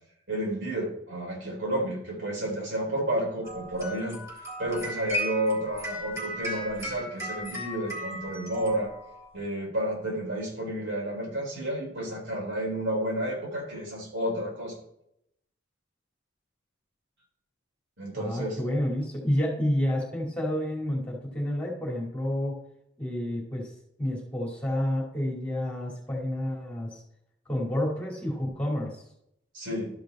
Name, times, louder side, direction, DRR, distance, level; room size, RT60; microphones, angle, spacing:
voice 1, 0.3-4.2 4.6-8.9 9.3-14.7 18.0-18.6 29.5-29.9, right 1 dB, 80° right, -3 dB, 4.2 m, -31 dB
sound 1, 3.4-9.3, equal, 15° right, 2.7 m, -36 dB
voice 2, 18.1-22.6 23.0-23.7 24.0-27.0 27.5-29.0, left 1 dB, 5° left, -3 dB, 2.6 m, -29 dB
12.5 x 5.2 x 4.2 m, 0.75 s
head